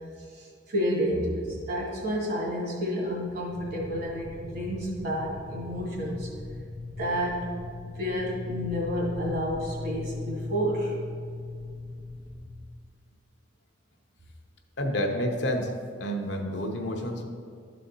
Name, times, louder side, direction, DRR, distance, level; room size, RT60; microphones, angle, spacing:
voice 1, 0.3-6.3 7.0-7.4 7.9-11.0, equal, 55° right, -3 dB, 2.0 m, -30 dB
sound 1, 3.5-12.9, left 2 dB, 35° left, 0.5 m, -39 dB
voice 2, 14.8-15.7 16.0-17.2, equal, 65° left, 3 dB, 0.9 m, -29 dB
12.0 x 4.2 x 4.0 m, 2.2 s
head